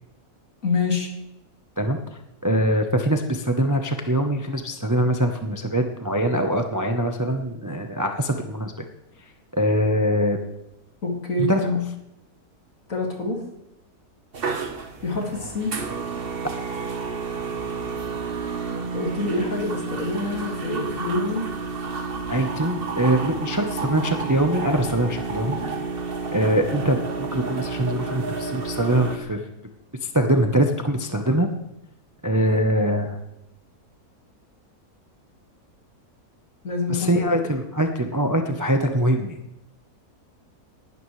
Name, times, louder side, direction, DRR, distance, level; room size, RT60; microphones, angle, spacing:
voice 1, 0.6-1.1 11.0-11.8 12.9-13.4 15.0-15.7 18.9-21.5 36.6-37.5, left 3 dB, 60° left, 0 dB, 2.7 m, -26 dB
voice 2, 2.4-8.7 9.5-10.4 11.4-11.6 22.3-25.6 26.3-29.4 30.0-31.5 32.2-33.2 36.9-39.4, right 1 dB, 15° right, 4 dB, 0.6 m, -23 dB
sound 1, 14.3-29.2, right 4 dB, 40° right, 1.2 m, -30 dB
19.0 x 12.5 x 3.2 m, 0.90 s
omnidirectional pair, 1.6 m